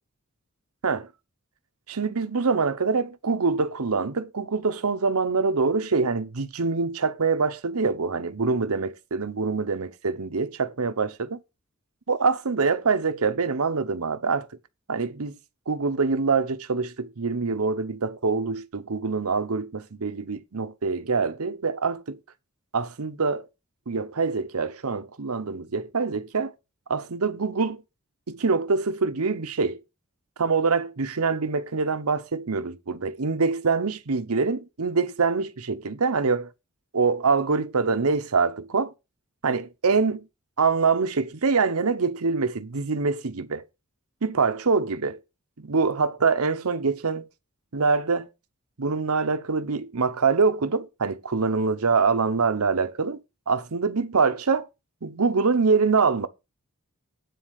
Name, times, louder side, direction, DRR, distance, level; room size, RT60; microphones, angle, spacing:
voice 1, 1.9-11.4 12.1-14.5 14.9-15.4 15.7-22.2 22.7-23.5 23.9-26.5 26.9-27.8 28.3-29.8 30.4-36.5 36.9-38.9 39.4-40.2 40.6-43.6 44.2-45.2 45.6-47.3 47.7-48.3 48.8-53.2 53.5-54.7 55.0-56.3, right 4 dB, 90° right, 0.9 m, -25 dB
9.4 x 4.1 x 6.4 m
head